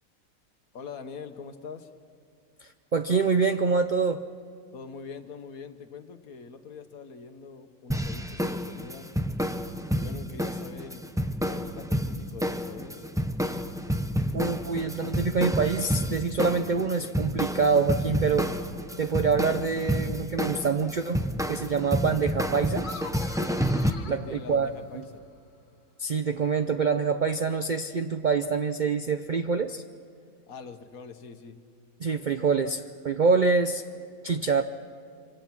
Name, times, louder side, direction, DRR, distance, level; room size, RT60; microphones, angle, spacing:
voice 1, 0.7-1.9 4.7-9.1 9.9-11.1 11.4-13.1 23.9-25.3 30.5-31.6, left 5 dB, 70° left, 8 dB, 1.6 m, -43 dB
voice 2, 2.6-4.2 14.3-18.5 19.0-22.9 24.1-24.7 26.0-29.8 32.0-33.8 34.2-34.6, right 5 dB, 55° right, 8 dB, 0.5 m, -26 dB
sound 1, 7.9-23.9, equal, 5° right, 0.5 m, -30 dB
sound 2, 22.8-25.3, left 4 dB, 35° left, 1.2 m, -44 dB
25.0 x 25.0 x 6.0 m, 2.3 s
omnidirectional pair, 1.6 m